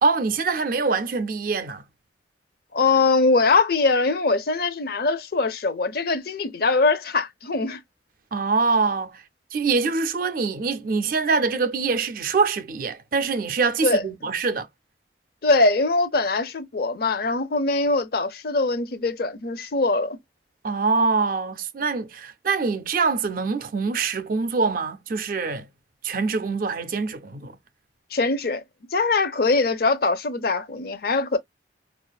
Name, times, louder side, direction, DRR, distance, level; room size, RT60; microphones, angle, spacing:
voice 1, 0.0-1.8 8.3-9.2 9.5-14.7 20.6-25.7 26.0-27.6, right 4 dB, 50° right, 0.4 m, -24 dB
voice 2, 2.7-7.8 13.8-14.0 15.4-20.2 28.1-28.6 28.9-31.4, left 3 dB, 55° left, 0.5 m, -22 dB
4.4 x 2.4 x 2.3 m
head